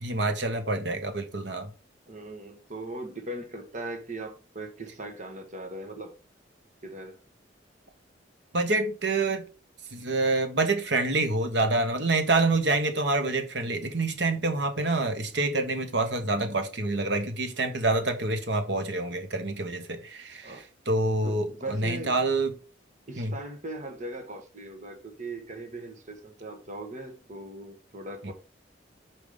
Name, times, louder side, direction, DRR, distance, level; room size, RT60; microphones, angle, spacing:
voice 1, 0.0-1.7 8.5-9.4 9.9-22.5 23.2-23.3 28.2-28.3, right 2 dB, 70° right, 1.3 m, -27 dB
voice 2, 2.1-6.1 6.8-7.2 20.4-20.6 21.2-22.2 23.1-28.3, right 2 dB, 40° right, 1.4 m, -39 dB
5.6 x 4.7 x 5.1 m
head